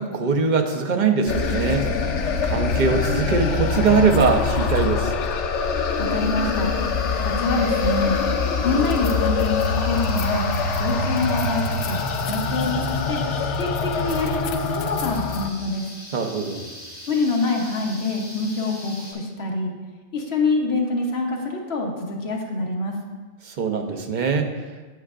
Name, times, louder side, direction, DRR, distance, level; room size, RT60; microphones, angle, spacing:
voice 1, 0.0-1.9 2.4-5.1 16.1-16.7 23.4-24.5, right 5 dB, 50° right, 5 dB, 0.7 m, -22 dB
sound 1, 1.3-15.5, left 4 dB, 80° left, 0.9 m, -24 dB
sound 2, 1.3-19.1, left 1 dB, 45° left, 2.5 m, -42 dB
voice 2, 6.1-6.7 7.2-8.2 8.6-10.4 10.8-12.0 12.3-13.2 13.6-15.9 17.1-19.7 20.1-22.9, left 3 dB, 65° left, 0 dB, 1.2 m, -25 dB
8.7 x 8.0 x 2.5 m, 1.3 s
omnidirectional pair, 1.2 m